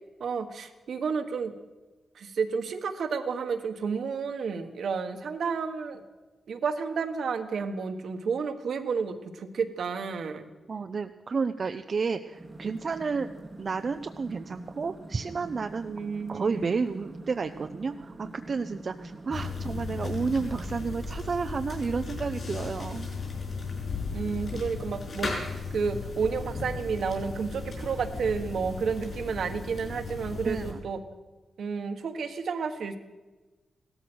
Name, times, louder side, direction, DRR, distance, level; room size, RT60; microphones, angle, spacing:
voice 1, 0.2-1.5 2.1-6.0 6.5-10.5 15.8-16.7 24.1-31.0 31.6-33.0, right 5 dB, 70° right, 7 dB, 1.4 m, -31 dB
voice 2, 10.7-13.3 13.6-15.9 16.3-23.1 30.4-30.8, right 5 dB, 45° right, 7 dB, 0.6 m, -31 dB
sound 1, 12.3-21.5, right 2 dB, 20° right, 1.1 m, -45 dB
sound 2, 19.3-30.7, left 4 dB, 50° left, 5.7 m, -36 dB
16.5 x 13.5 x 6.3 m, 1.2 s
wide cardioid pair, 115°, 0 cm